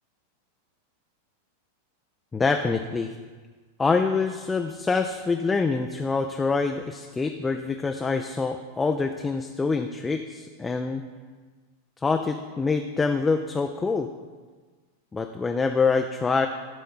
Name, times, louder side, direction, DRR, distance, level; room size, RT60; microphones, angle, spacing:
voice 1, 2.3-3.1 3.8-11.0 12.0-14.1 15.1-16.5, left 4 dB, 15° left, 5 dB, 0.4 m, -25 dB
12.0 x 4.2 x 5.5 m, 1.4 s
figure-of-eight pair, 90°, 0 cm